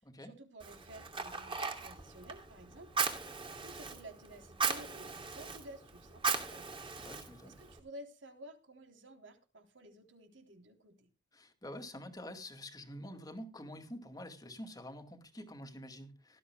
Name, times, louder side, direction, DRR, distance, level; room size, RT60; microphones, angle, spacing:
voice 1, 0.2-6.9 7.4-11.1, right 1 dB, 80° right, 5 dB, 3.6 m, -53 dB
Fire, 0.6-7.8, right 5 dB, 25° right, 2.6 m, -38 dB
voice 2, 7.0-7.6 11.3-16.4, left 1 dB, 20° left, 5 dB, 2.3 m, -47 dB
18.5 x 13.5 x 2.3 m, 0.30 s
head